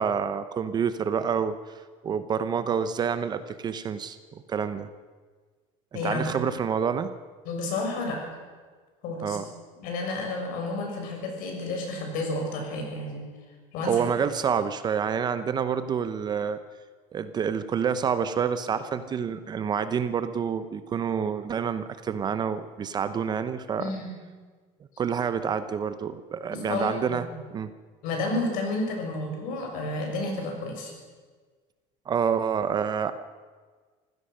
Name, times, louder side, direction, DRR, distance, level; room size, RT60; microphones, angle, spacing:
voice 1, 0.0-1.6 2.0-4.2 4.5-4.9 5.9-7.1 9.2-9.5 13.8-16.6 17.1-23.9 25.0-27.2 27.5-27.7 32.1-33.1, right 7 dB, 25° right, 12 dB, 0.8 m, -28 dB
voice 2, 5.9-6.3 7.4-8.2 9.0-9.4 9.8-13.2 13.7-14.0 23.8-24.1 26.5-27.2 28.0-30.9, left 2 dB, 60° left, 2 dB, 6.8 m, -31 dB
25.0 x 16.0 x 6.5 m, 1.5 s
cardioid pair, 150°, 16 cm